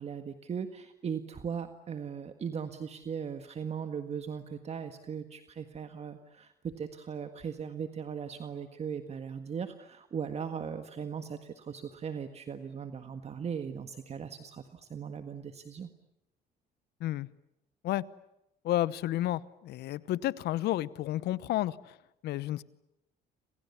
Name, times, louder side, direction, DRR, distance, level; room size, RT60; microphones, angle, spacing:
voice 1, 0.0-15.9, right 7 dB, 40° right, 8 dB, 1.7 m, -38 dB
voice 2, 18.6-21.8 22.2-22.6, left 14 dB, 75° left, 19 dB, 1.0 m, -31 dB
30.0 x 27.0 x 7.1 m, 0.86 s
cardioid pair, 110°, 17 cm